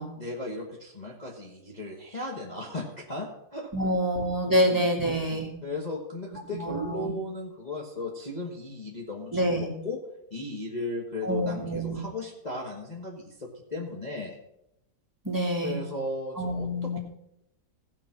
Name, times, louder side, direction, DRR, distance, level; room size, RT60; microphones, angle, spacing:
voice 1, 0.2-3.7 4.4-4.9 5.6-10.0 10.3-14.4 15.6-17.0, left 2 dB, 25° left, -2 dB, 1.4 m, -36 dB
voice 2, 3.7-5.5 6.5-7.1 9.3-9.7 11.2-12.0 15.2-15.8 16.4-17.0, equal, 10° right, 0 dB, 1.9 m, -27 dB
16.0 x 5.5 x 5.8 m, 0.82 s
omnidirectional pair, 1.9 m